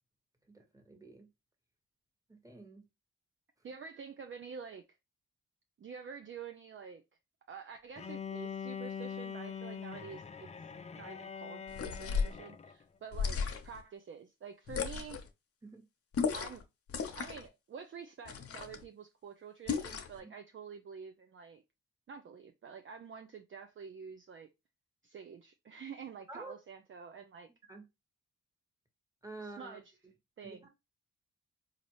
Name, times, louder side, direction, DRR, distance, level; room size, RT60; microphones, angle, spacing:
voice 1, 0.5-1.3 2.3-2.9 15.6-15.8 20.2-20.3 26.3-26.5 27.7-27.8 29.2-29.8 30.4-30.7, right 2 dB, 10° right, 1.3 m, -49 dB
voice 2, 3.6-4.8 5.8-7.0 7.5-10.5 11.0-15.2 16.3-16.6 17.1-21.6 22.1-24.5 25.0-27.5 29.4-30.0 30.4-30.7, right 6 dB, 45° right, 0.5 m, -48 dB
Bowed string instrument, 8.0-12.8, left 7 dB, 25° left, 0.4 m, -43 dB
sound 1, 11.7-12.4 13.1-13.8 14.7-15.3 16.1-16.6 16.9-17.5 18.3-18.8 19.7-20.2, left 6 dB, 50° left, 0.7 m, -35 dB
4.1 x 2.5 x 3.0 m
cardioid pair, 60°, 30 cm